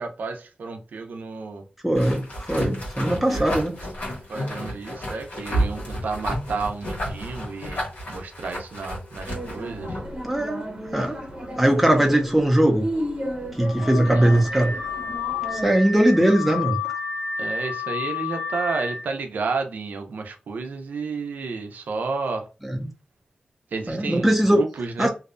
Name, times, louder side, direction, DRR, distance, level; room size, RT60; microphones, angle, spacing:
voice 1, 0.0-1.6 3.0-3.6 4.3-10.0 14.0-14.5 17.4-22.5 23.7-25.1, right 4 dB, 85° right, 0.4 m, -31 dB
voice 2, 1.8-2.2 2.5-3.7 10.2-10.6 10.9-11.2 11.6-12.9 13.6-14.7 15.5-16.8 22.6-22.8 23.9-24.6 25.0-25.1, right 1 dB, 5° right, 0.5 m, -20 dB
sound 1, 1.9-10.2, equal, 90° left, 1.1 m, -31 dB
sound 2, 9.3-15.7, equal, 35° right, 0.7 m, -33 dB
Car / Alarm, 13.6-19.1, left 5 dB, 45° left, 0.8 m, -31 dB
2.6 x 2.1 x 2.5 m
wide cardioid pair, 175°, 3 cm